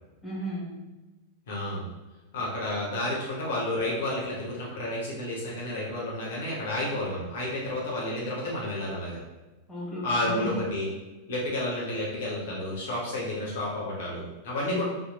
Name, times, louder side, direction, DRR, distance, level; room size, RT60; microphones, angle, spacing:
voice 1, 0.2-0.9 9.7-10.6 14.7-14.8, equal, 10° left, -6 dB, 0.8 m, -34 dB
voice 2, 1.5-1.9 2.3-9.2 10.0-10.9 11.3-14.8, left 1 dB, 55° left, -4 dB, 0.7 m, -31 dB
2.7 x 2.1 x 2.8 m, 1.1 s
figure-of-eight pair, 90°, 0 cm